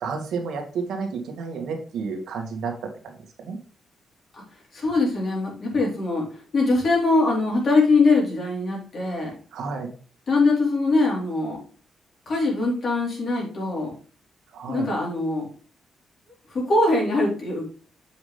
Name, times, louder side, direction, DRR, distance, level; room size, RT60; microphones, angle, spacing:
voice 1, 0.0-2.7 3.0-3.1 3.4-3.6 9.5-9.9 14.5-14.9, right 5 dB, 90° right, 3 dB, 1.9 m, -30 dB
voice 2, 4.7-9.3 10.3-11.6 12.3-13.9 14.7-15.5 16.5-17.7, left 3 dB, 45° left, -2 dB, 3.8 m, -22 dB
7.2 x 6.0 x 3.4 m, 0.40 s
wide cardioid pair, 150°, 0 cm